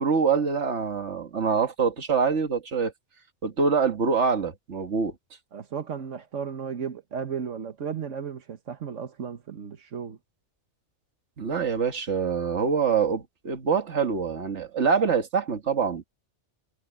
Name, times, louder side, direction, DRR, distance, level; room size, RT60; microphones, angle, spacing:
voice 1, 0.0-2.9 3.4-5.1 11.4-16.0, right 5 dB, 70° right, 1.9 m, -25 dB
voice 2, 5.5-10.2, right 7 dB, 85° right, 1.6 m, -34 dB
omnidirectional pair, 1.2 m